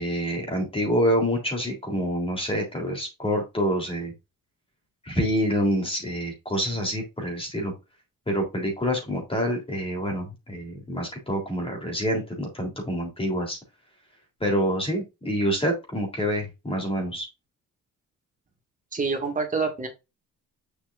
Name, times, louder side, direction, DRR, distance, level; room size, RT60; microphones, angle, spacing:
voice 1, 0.0-4.1 5.0-7.7 8.3-13.6 14.4-17.3, equal, 15° left, 1 dB, 3.6 m, -27 dB
voice 2, 18.9-19.9, right 4 dB, 25° right, 3 dB, 2.2 m, -26 dB
7.2 x 6.0 x 2.6 m, 0.24 s
cardioid pair, 150°, 33 cm